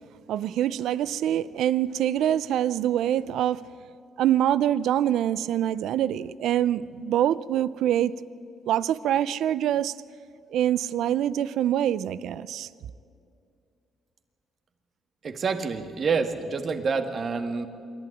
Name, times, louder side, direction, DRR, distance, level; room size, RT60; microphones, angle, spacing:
voice 1, 0.3-3.6 4.2-8.1 8.7-10.0 10.5-12.7, right 11 dB, 80° right, 0.5 m, -25 dB
voice 2, 15.2-17.7, right 5 dB, 50° right, 1.8 m, -27 dB
26.5 x 11.5 x 9.9 m
cardioid pair, 90°, 0 cm